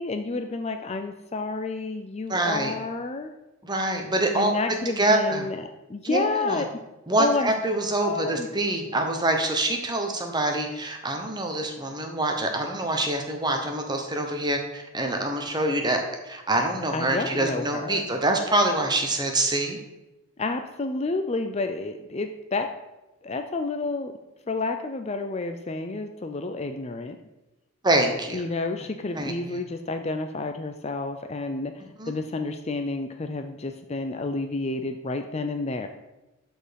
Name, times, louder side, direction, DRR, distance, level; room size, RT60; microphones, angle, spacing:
voice 1, 0.0-3.3 4.3-6.7 7.2-7.5 8.0-8.5 16.9-18.1 20.4-22.7 23.2-24.1 24.5-27.2 28.3-31.7 32.1-35.9, left 3 dB, 30° left, 6 dB, 0.5 m, -30 dB
voice 2, 2.3-2.7 3.6-4.5 5.0-5.5 6.0-6.6 7.1-19.8 27.8-28.4 29.1-29.6 32.0-32.1, right 1 dB, 20° right, 4 dB, 1.1 m, -25 dB
12.0 x 4.5 x 5.2 m, 1.0 s
head